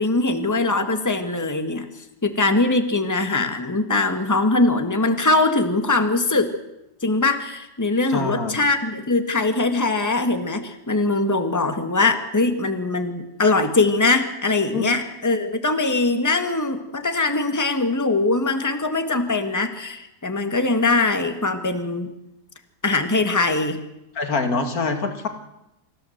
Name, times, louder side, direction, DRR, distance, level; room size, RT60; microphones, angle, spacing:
voice 1, 0.0-1.9 2.2-6.5 7.0-22.1 22.8-23.8, left 3 dB, 10° left, 7 dB, 1.7 m, -21 dB
voice 2, 8.1-8.5 14.7-14.9 24.1-25.3, left 3 dB, 55° left, 6 dB, 2.6 m, -24 dB
25.5 x 15.5 x 7.9 m, 0.90 s
omnidirectional pair, 1.8 m